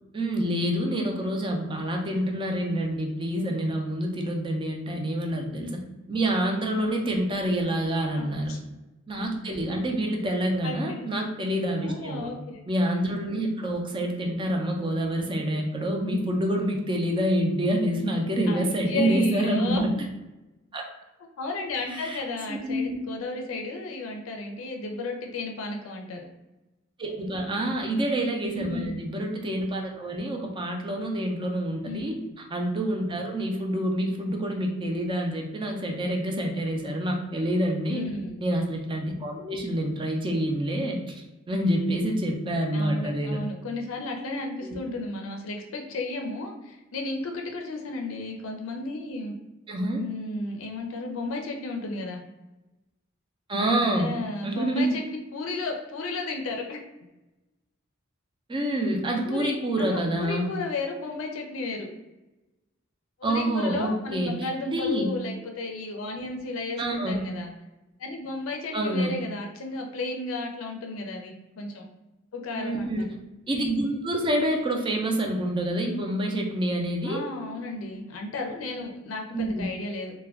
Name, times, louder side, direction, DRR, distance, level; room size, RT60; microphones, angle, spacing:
voice 1, 0.1-5.8 6.1-8.5 9.1-12.3 12.7-19.9 20.7-20.8 21.9-22.2 22.5-23.0 27.0-32.2 32.5-38.1 38.4-43.4 44.6-44.8 49.7-50.0 53.5-54.1 54.4-54.9 58.5-60.4 63.2-65.1 66.8-67.2 68.7-69.2 72.5-73.0 73.5-77.2 79.3-79.6, right 1 dB, 25° right, 2 dB, 0.4 m, -27 dB
voice 2, 8.2-8.6 10.6-11.1 11.8-12.6 18.5-19.8 21.4-26.2 27.4-27.8 28.4-29.0 31.8-32.0 37.9-38.4 42.7-49.4 49.9-52.2 53.9-56.8 59.2-61.9 63.2-67.5 68.0-71.9 72.3-73.1 77.0-80.1, left 2 dB, 85° left, 2 dB, 0.4 m, -34 dB
2.3 x 2.2 x 3.4 m, 1.0 s
head